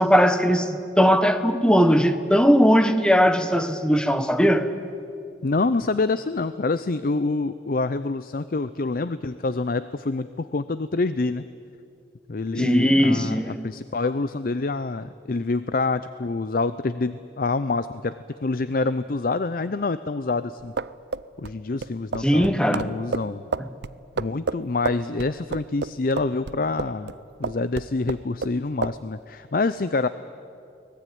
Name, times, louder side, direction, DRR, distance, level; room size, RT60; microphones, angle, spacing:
voice 1, 0.0-4.7 12.6-13.6 22.2-22.9, equal, 5° left, 1.1 m, -19 dB
voice 2, 5.4-11.5 12.3-18.1 18.4-20.7 21.4-23.4 24.2-27.1 27.4-30.1, left 3 dB, 50° left, 0.5 m, -26 dB
sound 1, 20.6-27.1 27.4-28.6 28.8-29.0, right 4 dB, 70° right, 0.5 m, -30 dB
24.5 x 19.0 x 9.3 m
head